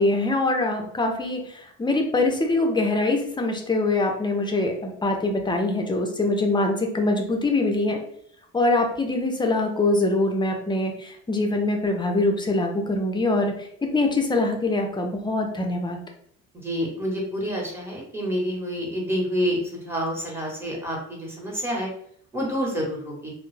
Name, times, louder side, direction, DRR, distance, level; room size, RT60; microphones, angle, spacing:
voice 1, 0.0-1.4 1.8-8.0 8.5-13.5 13.9-16.0, left 2 dB, 15° left, 3 dB, 0.5 m, -23 dB
voice 2, 16.5-21.9 22.3-23.3, equal, 5° right, -3 dB, 0.9 m, -28 dB
2.2 x 2.0 x 3.1 m, 0.66 s
cardioid pair, 105°, 32 cm